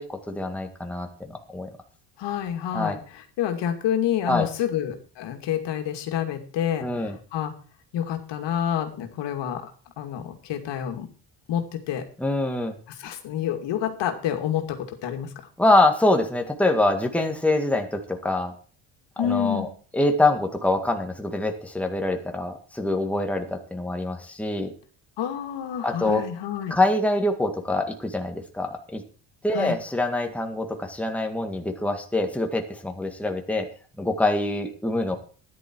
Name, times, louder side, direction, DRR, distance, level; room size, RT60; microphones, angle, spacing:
voice 1, 0.0-1.7 2.7-3.0 4.3-4.5 6.8-7.2 12.2-12.7 15.6-18.5 19.2-19.7 19.9-24.7 25.8-26.2 26.7-29.0 29.4-33.7 34.0-35.2, left 2 dB, 5° left, 4 dB, 2.0 m, -25 dB
voice 2, 2.2-7.5 7.9-9.7 10.0-11.1 11.5-12.1 13.0-15.3 19.2-19.7 25.2-26.8 29.5-29.8, left 10 dB, 75° left, 5 dB, 2.5 m, -28 dB
13.0 x 11.0 x 4.6 m, 0.39 s
cardioid pair, 110°, 43 cm